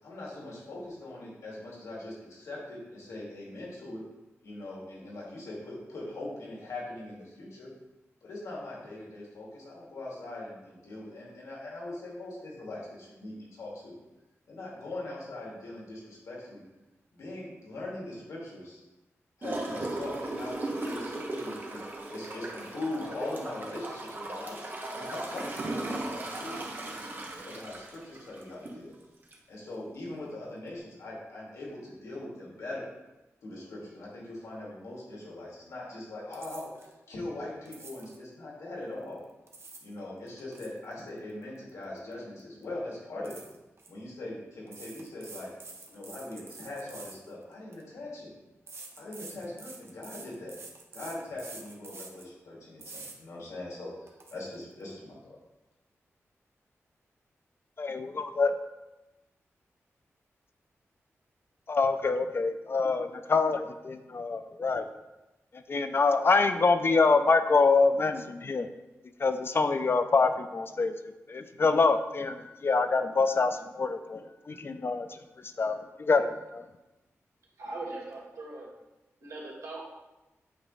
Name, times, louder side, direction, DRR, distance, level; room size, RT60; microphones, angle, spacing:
voice 1, 0.0-4.0 4.4-7.7 8.2-14.0 14.5-16.6 17.1-18.8 19.4-26.9 27.4-28.9 29.5-32.9 33.4-39.2 39.8-43.5 43.9-45.5 45.9-48.3 49.0-50.6 50.9-55.4, left 2 dB, 90° left, -4 dB, 2.4 m, -41 dB
Gurgling / Toilet flush, 19.4-28.8 29.3-29.4, right 2 dB, 40° right, 1.3 m, -37 dB
sound 1, 36.3-36.9 37.7-38.2 39.2-39.9 40.3-42.1 42.4-42.6 43.2-43.9 44.7-47.8 48.7-52.3 52.8-53.2 53.6-53.7 54.1-54.3, right 3 dB, 55° right, 1.0 m, -47 dB
voice 2, 57.8-58.5 61.7-64.8 65.7-68.7 69.2-75.1 75.6-76.6, left 4 dB, 50° left, 9 dB, 0.6 m, -26 dB
voice 3, 77.6-78.7 79.2-79.9, right 2 dB, 75° right, -3 dB, 2.1 m, -40 dB
8.5 x 3.0 x 5.5 m, 1.0 s
cardioid pair, 75°, 5 cm